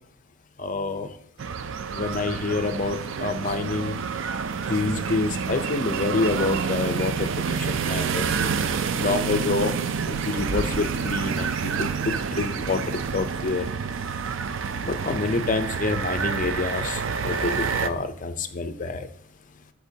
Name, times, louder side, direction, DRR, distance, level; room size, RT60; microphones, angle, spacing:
voice 1, 0.6-1.1 1.9-4.0 4.7-7.1 7.7-8.2 9.0-9.7 10.1-11.5 11.8-13.6 14.8-17.6 17.8-19.1, left 3 dB, 35° left, 9 dB, 0.5 m, -27 dB
sound 1, 1.4-17.9, right 6 dB, 55° right, 0.4 m, -28 dB
13.0 x 4.5 x 2.8 m, 0.63 s
head